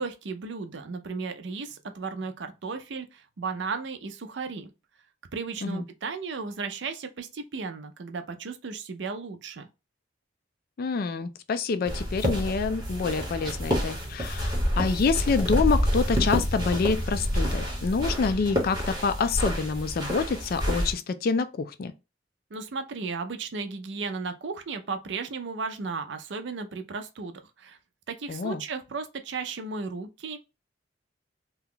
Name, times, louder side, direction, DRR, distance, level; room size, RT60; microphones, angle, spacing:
voice 1, 0.0-4.7 5.3-9.7 22.5-27.8 28.1-30.4, right 4 dB, 65° right, 0.5 m, -35 dB
voice 2, 10.8-21.9 28.3-28.6, left 4 dB, 50° left, 0.4 m, -27 dB
sound 1, 11.9-20.9, equal, 20° right, 1.1 m, -28 dB
2.8 x 2.3 x 3.6 m
head